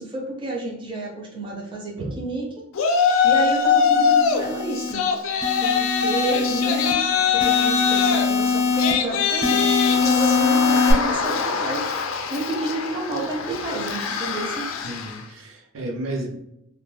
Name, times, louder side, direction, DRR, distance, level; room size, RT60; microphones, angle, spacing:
voice 1, 0.0-5.0 5.6-7.0 7.3-14.7, right 2 dB, 25° right, -2 dB, 0.5 m, -30 dB
Yell, 2.7-4.4 4.7-15.2, left 6 dB, 85° left, 0.3 m, -23 dB
sound 1, 3.8-4.9 5.4-6.9 7.4-8.9 9.4-10.9, left 4 dB, 45° left, 0.6 m, -22 dB
voice 2, 14.8-16.4, right 1 dB, 90° right, 0 dB, 0.6 m, -32 dB
2.2 x 2.2 x 3.2 m, 0.80 s
head